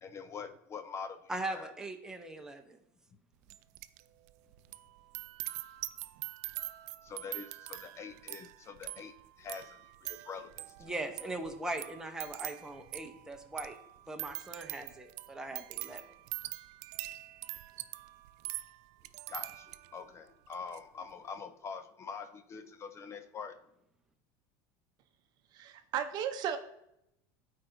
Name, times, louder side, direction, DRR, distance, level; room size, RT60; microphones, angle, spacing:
voice 1, 0.0-1.7 7.0-10.9 19.3-23.6, left 5 dB, 30° left, 10 dB, 0.5 m, -45 dB
voice 2, 1.3-2.8 10.8-13.8 14.1-16.0, right 2 dB, 5° right, 4 dB, 0.9 m, -40 dB
sound 1, 3.5-4.0 4.3-20.0 20.5-20.8, right 18 dB, 70° right, 0.4 m, -44 dB
voice 3, 25.5-26.6, right 9 dB, 50° right, 8 dB, 0.7 m, -35 dB
12.5 x 4.5 x 2.7 m, 0.79 s
supercardioid pair, 125°, 9 cm